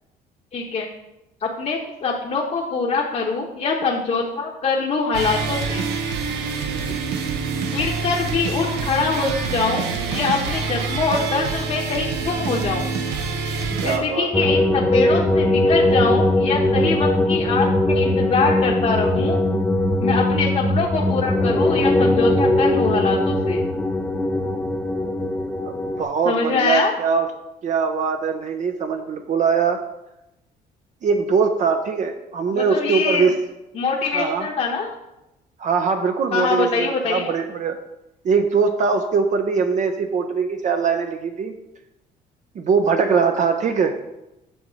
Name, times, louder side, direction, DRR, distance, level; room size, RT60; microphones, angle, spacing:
voice 1, 0.5-0.9 1.4-5.8 7.7-9.8 10.1-12.9 13.7-19.4 20.0-23.6 26.2-26.9 32.5-33.3 33.7-34.9 36.3-37.3, left 4 dB, 40° left, -1 dB, 1.0 m, -23 dB
sound 1, 5.1-14.0, right 4 dB, 85° right, 1.1 m, -26 dB
voice 2, 6.7-7.0 13.8-14.3 20.3-20.5 26.0-27.3 27.6-29.8 31.0-33.4 34.1-34.5 35.6-37.8 38.2-41.5 42.5-43.9, right 5 dB, 45° right, 5 dB, 0.7 m, -21 dB
sound 2, 14.3-26.0, left 1 dB, 10° left, 0.6 m, -20 dB
8.0 x 4.1 x 6.3 m, 0.92 s
cardioid pair, 110°, 17 cm